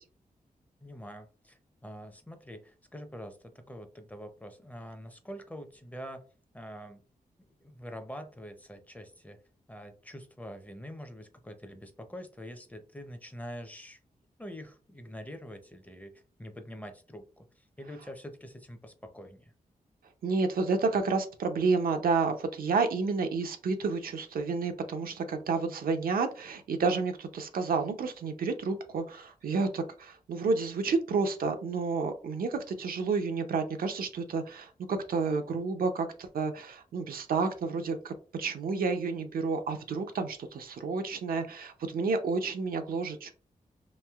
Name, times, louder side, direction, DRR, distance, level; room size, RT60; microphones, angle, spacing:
voice 1, 0.8-6.2 6.5-7.0 7.4-9.4 9.7-14.0 14.4-19.5, equal, 10° left, 7 dB, 0.5 m, -45 dB
voice 2, 20.2-38.1 38.4-43.3, right 4 dB, 80° right, 6 dB, 0.5 m, -30 dB
3.0 x 2.7 x 2.3 m, 0.37 s
cardioid pair, 75°, 15 cm